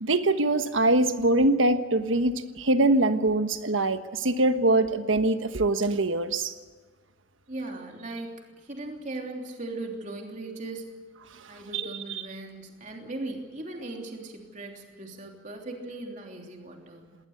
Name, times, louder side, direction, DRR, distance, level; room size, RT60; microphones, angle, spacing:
voice 1, 0.0-6.5 11.7-12.2, right 2 dB, 80° right, 9 dB, 1.3 m, -23 dB
voice 2, 7.5-11.0 11.4-17.2, right 2 dB, 40° right, 2 dB, 3.3 m, -38 dB
20.0 x 19.0 x 8.1 m, 1.4 s
head